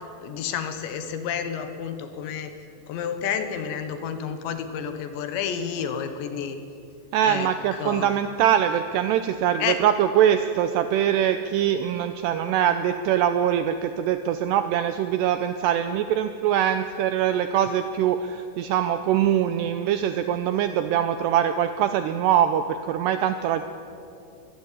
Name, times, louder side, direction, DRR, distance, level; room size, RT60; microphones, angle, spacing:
voice 1, 0.2-2.5 2.9-6.6 7.2-8.1 9.6-9.8, left 7 dB, 70° left, 8 dB, 3.4 m, -30 dB
voice 2, 7.1-23.6, right 10 dB, 85° right, 9 dB, 2.4 m, -23 dB
22.5 x 15.0 x 9.9 m, 2.6 s
omnidirectional pair, 5.6 m